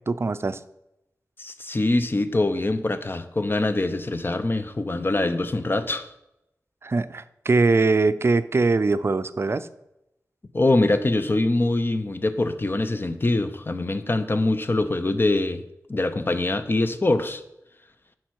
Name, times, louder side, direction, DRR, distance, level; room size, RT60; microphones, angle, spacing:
voice 1, 0.1-0.6 6.8-9.7, right 3 dB, 45° right, 13 dB, 0.4 m, -22 dB
voice 2, 1.4-6.1 10.5-15.6 15.9-17.4, left 2 dB, 40° left, 10 dB, 0.7 m, -24 dB
8.7 x 5.9 x 4.7 m, 0.87 s
wide cardioid pair, 60°, 6 cm